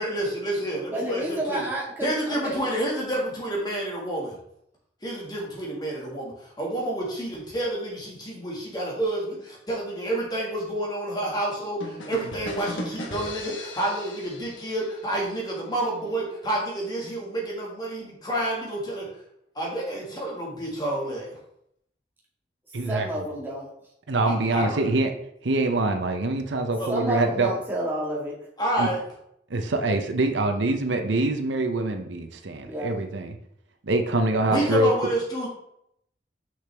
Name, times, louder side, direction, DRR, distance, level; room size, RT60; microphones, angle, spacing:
voice 1, 0.0-1.6 2.0-4.4 5.0-19.1 19.6-21.3 24.3-24.8 26.8-27.1 28.6-29.0 34.5-35.5, right 1 dB, 20° left, -3 dB, 1.8 m, -29 dB
voice 2, 0.9-2.6 22.9-23.7 26.9-28.3 32.6-33.0, right 1 dB, 10° right, -4 dB, 1.7 m, -30 dB
sound 1, 11.8-15.5, left 1 dB, 90° left, 1.2 m, -37 dB
voice 3, 22.7-23.1 24.1-25.1 25.4-27.5 28.8-28.9 29.5-33.4 33.8-34.9, right 2 dB, 75° right, 6 dB, 0.7 m, -24 dB
6.2 x 6.0 x 3.4 m, 0.74 s
head